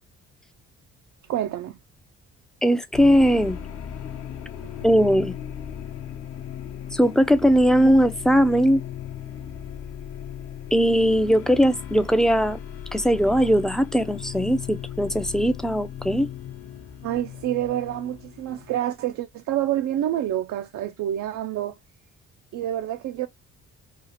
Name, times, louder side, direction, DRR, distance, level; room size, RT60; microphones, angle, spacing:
voice 1, 1.3-1.8 4.6-4.8 17.0-21.8 22.5-23.3, right 12 dB, 70° right, 0.4 m, -28 dB
voice 2, 2.6-3.6 4.8-5.3 6.9-8.8 10.7-12.6 12.9-16.3, equal, ahead, 0.4 m, -19 dB
sound 1, 2.9-18.8, left 9 dB, 50° left, 0.7 m, -37 dB
2.9 x 2.4 x 3.9 m
cardioid pair, 90°, 30 cm